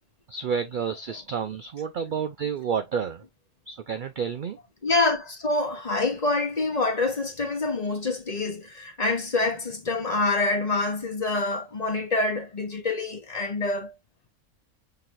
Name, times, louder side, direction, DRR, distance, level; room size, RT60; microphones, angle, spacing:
voice 1, 0.3-3.2 3.7-4.6, right 7 dB, 65° right, 0.5 m, -30 dB
voice 2, 4.8-13.9, left 3 dB, 35° left, 0.9 m, -26 dB
5.9 x 3.2 x 2.5 m
omnidirectional pair, 1.4 m